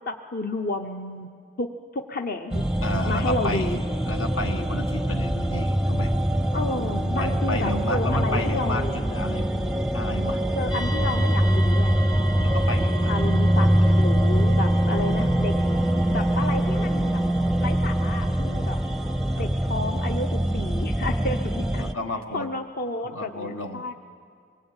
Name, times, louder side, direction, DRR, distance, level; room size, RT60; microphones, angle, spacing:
voice 1, 0.1-1.3 1.6-1.7 1.9-2.6 3.1-3.8 6.5-8.9 10.6-11.9 12.4-12.5 13.0-13.7 14.0-15.5 16.1-17.2 17.6-18.8 19.4-21.8 22.3-23.9, left 2 dB, 45° left, 5 dB, 0.8 m, -31 dB
sound 1, 2.5-21.9, right 1 dB, 5° right, 0.6 m, -23 dB
voice 2, 2.8-3.7 4.0-6.1 6.9-9.5 9.9-10.4 12.4-13.2 13.8-14.1 19.4-19.5 21.7-22.5 23.0-23.9, left 1 dB, 80° left, 5 dB, 1.7 m, -32 dB
sound 2, 10.7-19.4, right 3 dB, 20° left, 1.0 m, -40 dB
24.5 x 21.5 x 8.9 m, 2.3 s
head